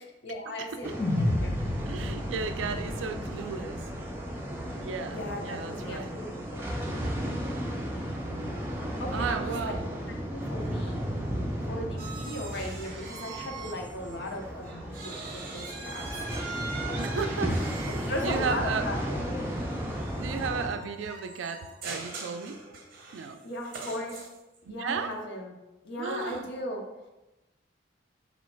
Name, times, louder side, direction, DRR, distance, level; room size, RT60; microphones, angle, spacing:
voice 1, 0.2-1.5 5.1-6.7 9.0-9.8 10.3-11.0 11.6-16.1 17.8-19.5 23.4-24.2 24.7-25.6 25.8-26.8, left 1 dB, 65° left, 1 dB, 0.7 m, -37 dB
sound 1, 0.8-20.7, equal, 15° right, 0.6 m, -34 dB
sound 2, 1.0-5.3, left 1 dB, 25° left, 0.8 m, -32 dB
voice 2, 1.9-3.8 4.8-6.1 8.2-8.6 9.1-9.9 17.0-17.6 18.0-18.9 20.2-22.6 23.1-23.4 23.8-23.9 24.8-25.2 26.0-26.5, right 5 dB, 80° right, 9 dB, 0.3 m, -34 dB
sound 3, 12.0-14.4 14.6-24.6, right 3 dB, 50° right, 0.7 m, -42 dB
3.1 x 2.7 x 4.4 m, 1.0 s
head